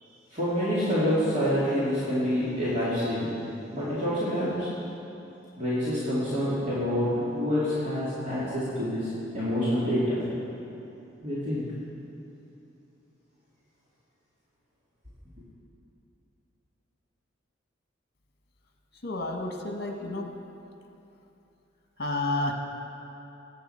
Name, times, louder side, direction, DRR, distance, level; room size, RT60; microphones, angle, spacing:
voice 1, 0.3-3.3 3.7-4.7 5.6-9.1 9.3-10.2 11.2-11.6, equal, 40° right, -11 dB, 2.5 m, -27 dB
voice 2, 19.0-20.4 22.0-22.5, left 2 dB, 55° left, 3 dB, 1.3 m, -30 dB
17.5 x 8.6 x 4.4 m, 2.9 s
head